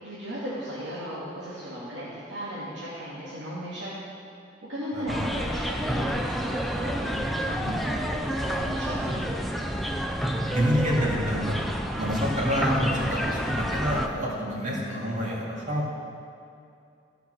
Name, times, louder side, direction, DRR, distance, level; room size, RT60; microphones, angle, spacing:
voice 1, 0.0-3.9 4.7-7.8 8.1-9.3, equal, 85° right, -10 dB, 2.3 m, -36 dB
sound 1, 5.1-14.1, equal, ahead, 0.5 m, -29 dB
voice 2, 10.5-11.6 12.0-15.9, equal, 40° right, -5 dB, 2.5 m, -27 dB
15.5 x 5.9 x 6.2 m, 2.5 s
head